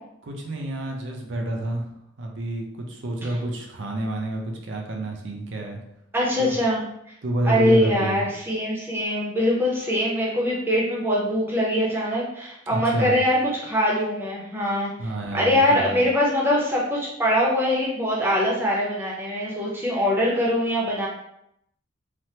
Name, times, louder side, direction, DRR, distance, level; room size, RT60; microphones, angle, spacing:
voice 1, 0.2-1.9 2.2-5.8 6.4-6.6 7.2-8.2 12.7-13.2 15.0-16.0, right 1 dB, 75° right, 1 dB, 0.6 m, -29 dB
voice 2, 6.1-6.8 7.4-14.9 15.3-21.1, equal, 10° right, -5 dB, 0.6 m, -23 dB
3.3 x 2.1 x 2.8 m, 0.78 s
head